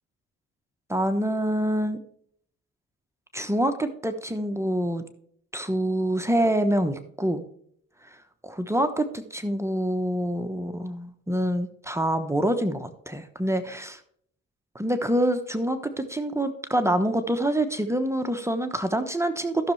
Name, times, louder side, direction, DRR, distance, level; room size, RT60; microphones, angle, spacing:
voice 1, 0.9-2.0 3.3-5.0 5.5-7.4 8.4-14.0 14.7-19.7, right 1 dB, 10° right, 7 dB, 1.1 m, -26 dB
13.5 x 6.7 x 3.3 m, 0.64 s
cardioid pair, 90°, 30 cm